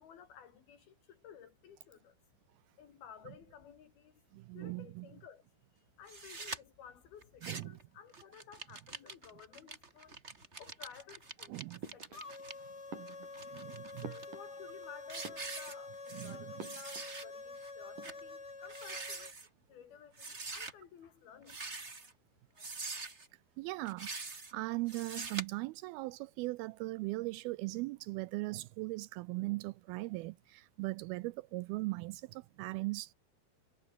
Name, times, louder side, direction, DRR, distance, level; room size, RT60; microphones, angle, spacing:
voice 1, 0.0-2.2 2.8-4.2 4.5-5.4 6.0-10.2 10.6-12.2 13.5-13.6 14.0-19.3 19.7-21.9 22.5-22.7, left 8 dB, 75° left, 4.3 m, -55 dB
voice 2, 4.3-5.1 7.4-7.8 11.5-11.8 12.6-12.7 13.0-13.2 13.5-14.1 16.1-16.6 23.6-24.1 24.5-33.1, right 21 dB, 85° right, 2.4 m, -39 dB
sound 1, 6.1-6.6 7.2-7.8 8.1-12.5 13.1-14.2 14.7-14.8 15.1-16.3 16.6-17.2 17.6-17.7 18.0-18.2 18.6-19.5 20.2-20.7 21.4-22.1 22.6-23.3 23.8-24.5 24.9-25.4, right 3 dB, 20° right, 2.1 m, -44 dB
sound 2, 11.8-12.5 12.9-14.9 15.1-16.0 16.6-17.6 17.8-18.4, right 5 dB, 55° right, 6.3 m, -51 dB
sound 3, 12.1-19.3, left 3 dB, 25° left, 4.4 m, -48 dB
omnidirectional pair, 4.4 m